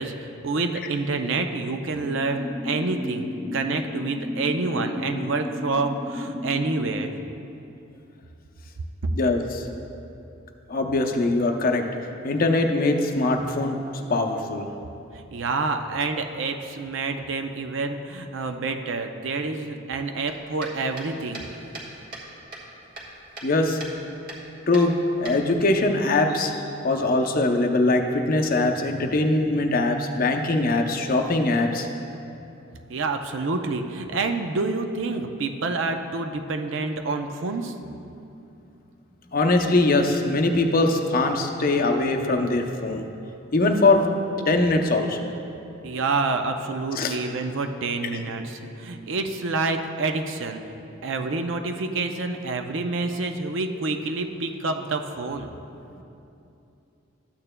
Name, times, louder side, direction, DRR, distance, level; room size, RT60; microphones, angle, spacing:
voice 1, 0.0-7.2 9.0-9.1 15.3-21.5 32.9-37.7 45.8-50.6 51.0-55.5, right 3 dB, 65° right, 6 dB, 0.5 m, -28 dB
sound 1, 2.0-7.0, left 1 dB, ahead, 0.5 m, -33 dB
voice 2, 9.1-9.6 10.7-11.9 12.2-13.8 14.1-14.7 23.4-23.8 24.7-24.9 25.2-31.9 39.3-43.1 43.5-44.0 44.5-45.3 47.0-47.2, left 2 dB, 45° left, 4 dB, 0.6 m, -22 dB
sound 2, 20.2-22.3 22.5-23.5 23.8-24.0 24.3-24.4 24.7-25.8, right 2 dB, 45° right, 1.5 m, -39 dB
13.0 x 8.7 x 2.2 m, 2.8 s
head